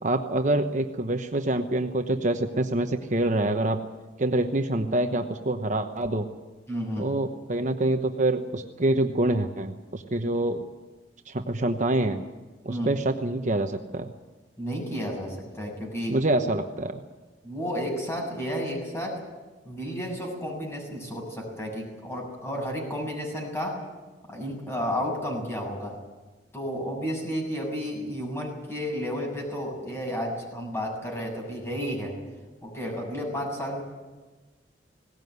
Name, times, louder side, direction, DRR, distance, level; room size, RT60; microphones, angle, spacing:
voice 1, 0.0-3.8 4.2-6.3 7.0-10.6 11.3-12.2 12.6-14.1 16.1-17.0, right 2 dB, 45° right, 5 dB, 1.1 m, -26 dB
voice 2, 6.7-7.1 12.7-12.9 14.6-16.2 17.4-19.2 19.6-23.8 24.3-25.9 26.5-32.1 32.6-33.8, equal, 15° left, 0 dB, 7.2 m, -32 dB
20.0 x 18.0 x 9.5 m, 1.2 s
head